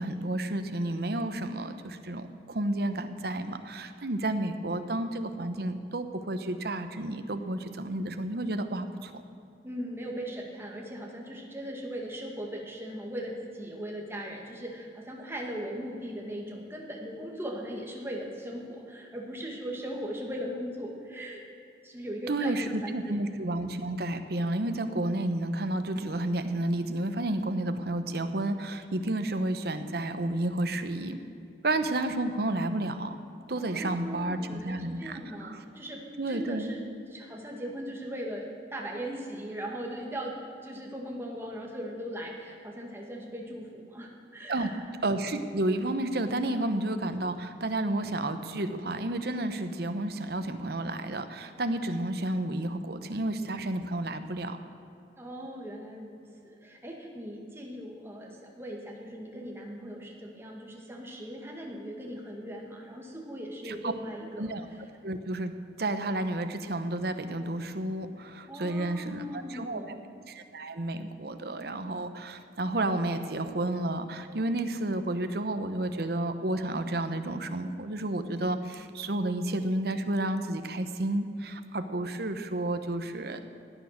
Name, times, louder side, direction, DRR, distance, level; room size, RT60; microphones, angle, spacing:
voice 1, 0.0-9.2 22.3-31.2 31.6-33.2 33.5-35.6 36.2-36.7 44.5-44.7 45.0-54.6 63.6-63.9 64.4-64.6 65.0-69.9 70.3-83.4, right 1 dB, 60° right, 9 dB, 0.9 m, -31 dB
voice 2, 9.6-21.4 21.8-23.2 33.5-36.8 37.1-40.4 40.6-44.8 55.2-64.5 68.5-70.0, equal, 15° right, 0 dB, 1.9 m, -39 dB
17.0 x 9.5 x 6.6 m, 2.6 s
head